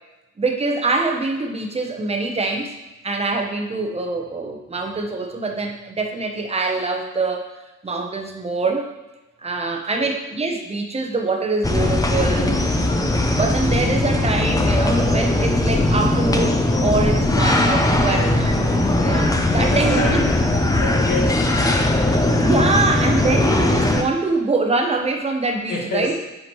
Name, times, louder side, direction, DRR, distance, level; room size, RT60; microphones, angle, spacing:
voice 1, 0.4-2.7 3.0-7.5 7.8-8.9 9.4-12.5 13.0-18.6 18.9-20.3 22.4-26.2, right 3 dB, 20° right, 3 dB, 0.7 m, -24 dB
voice 2, 9.7-10.1 18.1-18.6 19.5-20.2 20.8-22.3 25.7-26.2, left 2 dB, 90° left, -3 dB, 1.8 m, -28 dB
sound 1, 11.6-24.0, left 1 dB, 10° left, 0.5 m, -19 dB
8.0 x 5.0 x 3.0 m, 1.1 s
wide cardioid pair, 145°, 30 cm